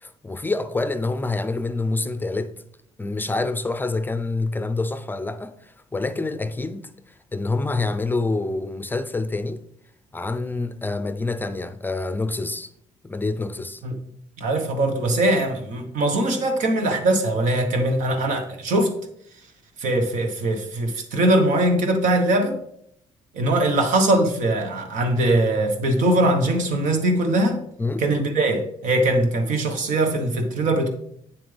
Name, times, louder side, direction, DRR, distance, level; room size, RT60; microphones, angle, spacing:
voice 1, 0.0-2.5 3.0-6.9 7.3-9.6 10.1-12.7 13.0-13.8 27.8-28.0, left 3 dB, 15° left, 0.5 m, -27 dB
voice 2, 14.4-18.9 19.8-22.6 23.3-27.6 28.0-30.9, right 1 dB, 75° right, 1.5 m, -21 dB
8.7 x 7.4 x 3.5 m
cardioid pair, 115°, 13 cm